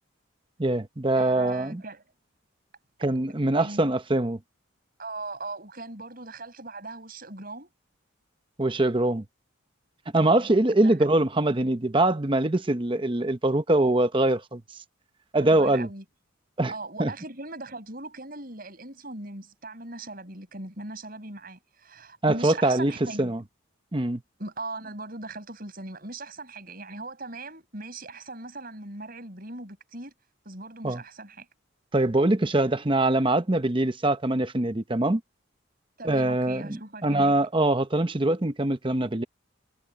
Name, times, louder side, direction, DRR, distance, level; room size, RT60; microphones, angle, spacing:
voice 1, 0.6-1.8 3.0-4.4 8.6-9.2 10.1-14.6 15.3-15.9 16.6-16.7 17.0-17.1 22.2-22.9 23.2-23.4 23.9-24.2 30.8-31.0 31.9-35.2 36.0-39.2, right 2 dB, 25° right, 0.8 m, -23 dB
voice 2, 1.1-2.0 3.6-4.0 5.0-7.7 10.1-10.5 10.8-11.0 15.4-16.0 16.7-23.3 24.4-30.1 30.4-31.5 36.0-37.3, right 2 dB, 45° right, 6.4 m, -39 dB
head